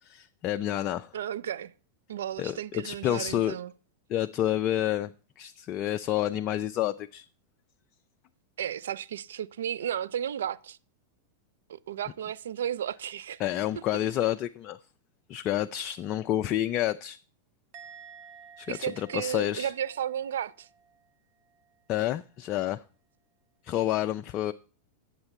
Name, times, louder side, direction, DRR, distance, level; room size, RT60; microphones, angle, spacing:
voice 1, 0.0-1.1 2.4-3.5 4.1-5.1 5.4-7.3 13.4-14.8 15.3-17.2 18.6-19.7 21.9-22.8 23.6-24.5, left 12 dB, 35° left, 0.3 m, -29 dB
voice 2, 1.1-1.7 2.1-3.7 8.6-10.8 11.7-13.4 18.7-20.7, right 10 dB, 60° right, 0.3 m, -33 dB
Musical instrument, 17.7-21.1 21.4-21.8, right 7 dB, 45° right, 0.8 m, -52 dB
8.7 x 6.7 x 4.6 m
figure-of-eight pair, 90°, 0 cm